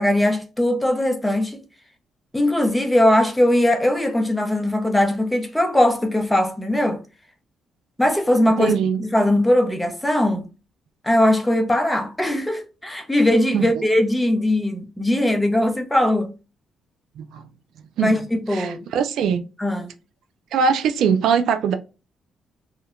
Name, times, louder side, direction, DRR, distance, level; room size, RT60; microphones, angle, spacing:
voice 1, 0.0-1.6 2.3-7.0 8.0-10.5 11.0-16.3 18.0-18.9 19.6-19.9, left 1 dB, 10° left, 0.6 m, -20 dB
voice 2, 8.6-9.0 13.5-13.7 17.2-17.5 18.0-18.1 18.5-19.4 20.5-21.7, right 6 dB, 80° right, 0.3 m, -21 dB
2.7 x 2.1 x 2.4 m
cardioid pair, 90°, 0 cm